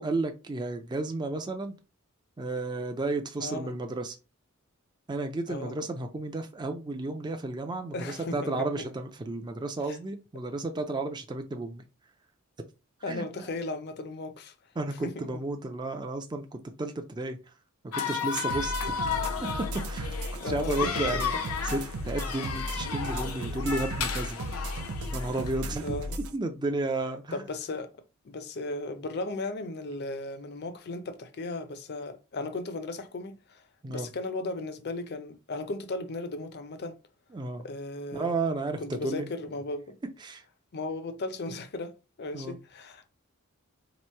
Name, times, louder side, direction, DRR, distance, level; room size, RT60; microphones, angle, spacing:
voice 1, 0.0-1.7 2.4-4.2 5.1-11.8 13.1-13.2 14.8-17.4 17.9-18.9 19.4-20.1 20.4-21.3 21.7-24.4 25.1-26.0 26.3-27.4 33.8-34.1 37.3-37.7 38.1-39.3 40.2-40.4 42.3-42.6, right 2 dB, 20° right, 0.4 m, -32 dB
voice 2, 3.4-3.7 5.5-5.8 7.9-8.9 9.9-10.0 13.0-14.5 15.0-15.1 20.4-21.2 25.8-26.2 27.3-28.0 28.2-33.6 33.9-37.0 37.6-38.3 38.8-40.0 40.7-43.1, left 2 dB, 50° left, 0.6 m, -36 dB
sound 1, 17.9-25.6, left 6 dB, 85° left, 0.7 m, -33 dB
sound 2, 18.5-26.3, equal, 85° right, 0.6 m, -35 dB
3.0 x 2.6 x 4.4 m
head